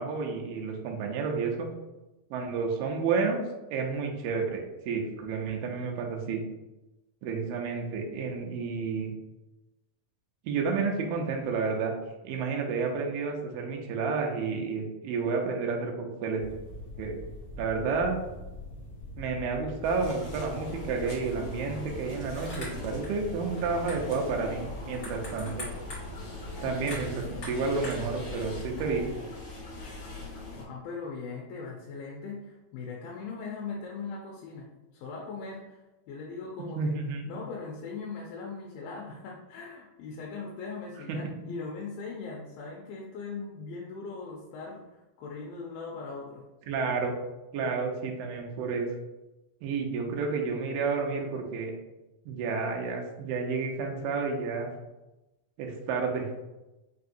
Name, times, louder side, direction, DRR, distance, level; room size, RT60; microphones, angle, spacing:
voice 1, 0.0-1.7 2.3-3.4 3.7-6.4 7.2-9.1 10.4-11.9 12.2-16.4 17.0-17.2 17.6-18.2 19.2-25.7 26.6-29.0 36.8-37.3 41.1-41.5 46.7-47.1 47.5-48.9 49.6-51.7 52.3-54.7 55.6-56.3, right 4 dB, 85° right, 2 dB, 2.3 m, -30 dB
sound 1, 16.4-29.2, left 2 dB, 40° left, 1.5 m, -42 dB
sound 2, 19.8-30.6, left 2 dB, 65° left, 2.2 m, -42 dB
voice 2, 30.5-35.8 36.1-36.9 37.3-46.4 47.6-47.7, left 4 dB, 85° left, -2 dB, 2.3 m, -40 dB
5.6 x 2.7 x 2.5 m, 1.0 s
omnidirectional pair, 4.0 m